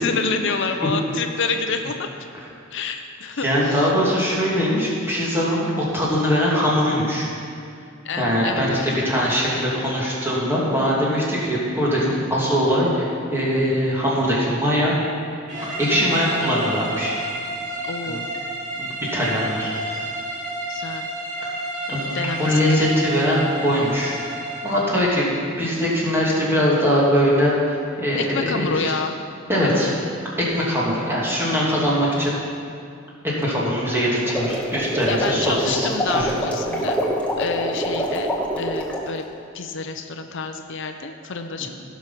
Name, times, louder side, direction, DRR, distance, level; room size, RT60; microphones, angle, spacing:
voice 1, 0.0-2.3 2.7-3.9 8.0-8.8 15.9-16.2 17.8-18.3 20.7-21.1 22.1-22.8 28.2-29.2 35.1-37.0 37.4-39.3 39.5-41.7, left 4 dB, 65° left, 6 dB, 0.7 m, -28 dB
voice 2, 3.4-7.3 8.2-14.9 15.8-17.1 18.1-18.2 18.8-19.7 21.9-22.1 22.4-24.2 24.6-25.3 25.6-28.9 29.5-29.9 30.4-32.3 33.4-35.9 36.1-36.3, equal, 10° right, -6 dB, 2.6 m, -21 dB
sound 1, 15.5-24.9, right 1 dB, 40° right, 2.4 m, -30 dB
sound 2, 34.2-39.1, equal, 5° left, 1.3 m, -25 dB
16.5 x 6.2 x 5.8 m, 2.4 s
head